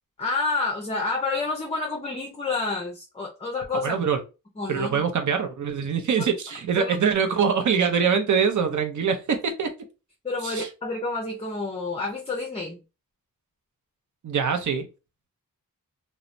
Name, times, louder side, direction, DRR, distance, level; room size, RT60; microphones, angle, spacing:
voice 1, 0.2-3.9 4.6-5.0 6.8-7.0 10.2-12.8, left 3 dB, 20° left, 0.5 m, -29 dB
voice 2, 3.7-4.2 4.7-9.7 10.4-10.7 14.2-14.9, right 6 dB, 60° right, 0.6 m, -24 dB
3.0 x 2.0 x 2.5 m
wide cardioid pair, 130°, 35 cm